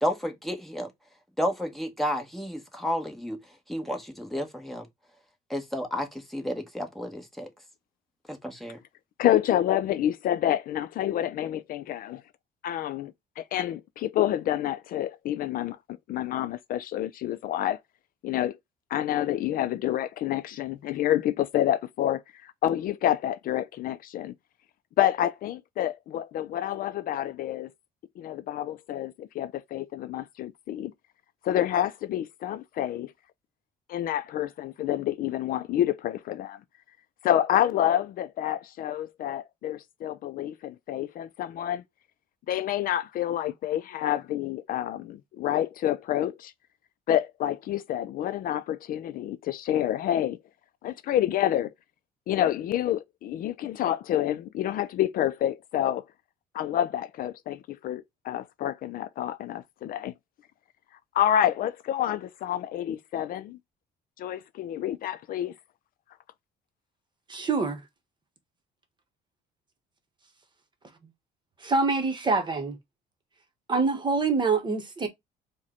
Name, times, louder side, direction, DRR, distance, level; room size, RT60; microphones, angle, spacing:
voice 1, 0.0-0.9 1.4-3.4 3.7-4.8 5.5-7.5 8.3-8.8, equal, ahead, 1.1 m, -31 dB
voice 2, 9.2-12.2 12.6-15.8 16.1-17.8 18.2-18.5 18.9-24.3 25.0-27.7 28.2-30.9 31.4-33.1 33.9-36.6 37.2-41.8 42.5-46.5 47.1-50.4 50.8-51.7 52.3-56.0 56.5-60.1 61.2-63.6 64.2-65.5, left 11 dB, 55° left, 0.4 m, -28 dB
voice 3, 67.3-67.8 71.6-72.8 73.7-75.1, right 4 dB, 25° right, 1.0 m, -25 dB
4.7 x 2.2 x 4.2 m
cardioid pair, 110°, 17 cm